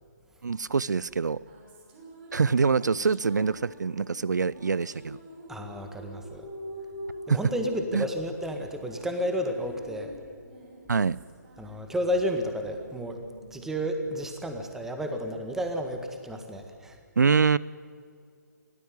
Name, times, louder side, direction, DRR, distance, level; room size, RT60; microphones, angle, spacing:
voice 1, 0.4-1.4 2.3-5.2 7.3-7.4 7.9-8.0 10.9-11.2 17.2-17.6, right 5 dB, 70° right, 21 dB, 0.5 m, -24 dB
sound 1, 1.2-14.8, equal, 30° right, 5.5 m, -46 dB
voice 2, 5.5-6.5 7.3-10.1 11.6-13.2 13.5-17.0, equal, 5° right, 5 dB, 1.8 m, -31 dB
23.0 x 17.0 x 9.4 m, 2.2 s
figure-of-eight pair, 145°, 10 cm